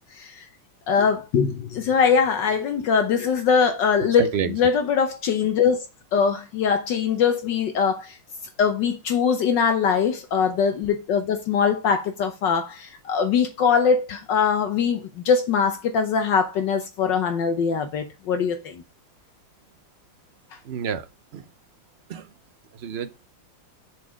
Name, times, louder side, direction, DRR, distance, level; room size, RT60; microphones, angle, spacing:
voice 1, 0.1-0.5 0.9-5.9 6.1-8.2 8.6-18.8, left 6 dB, 70° left, 1.5 m, -22 dB
voice 2, 4.2-4.5 20.6-21.4 22.1-22.3 22.7-23.1, right 7 dB, 70° right, 0.6 m, -29 dB
7.0 x 4.1 x 6.3 m
omnidirectional pair, 2.1 m